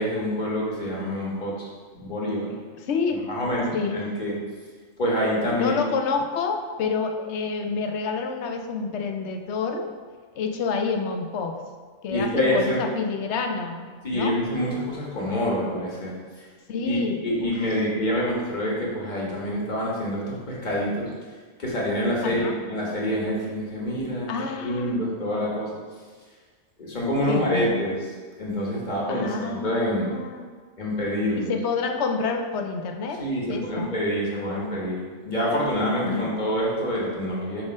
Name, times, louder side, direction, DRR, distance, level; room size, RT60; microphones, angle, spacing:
voice 1, 0.0-1.7 1.9-2.5 3.3-4.4 5.0-5.7 12.1-12.8 14.0-16.5 16.8-21.1 21.6-25.8 26.8-28.1 28.4-30.2 30.8-31.5 33.2-37.6, equal, 35° left, -5 dB, 1.6 m, -26 dB
voice 2, 2.9-3.2 3.7-4.0 5.6-9.9 10.4-11.6 12.0-14.4 16.7-17.5 22.2-22.6 24.3-25.2 27.3-27.8 29.1-30.4 31.4-33.9 36.0-36.3, left 4 dB, 65° left, 5 dB, 0.8 m, -28 dB
6.0 x 3.7 x 5.1 m, 1.5 s
omnidirectional pair, 1.4 m